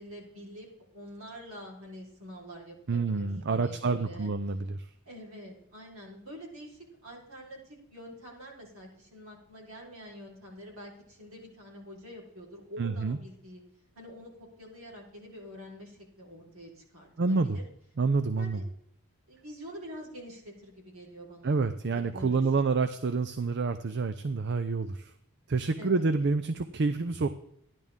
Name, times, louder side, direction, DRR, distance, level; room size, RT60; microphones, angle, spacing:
voice 1, 0.0-4.3 5.1-13.6 13.9-17.6 18.4-18.6 19.3-21.6 21.9-22.7 25.8-26.1, equal, 70° right, -2 dB, 4.2 m, -46 dB
voice 2, 2.9-4.9 12.8-13.2 17.2-17.6 18.0-18.6 21.4-25.1 25.5-27.3, right 4 dB, 50° right, 10 dB, 0.5 m, -28 dB
14.5 x 10.5 x 3.6 m, 0.73 s
head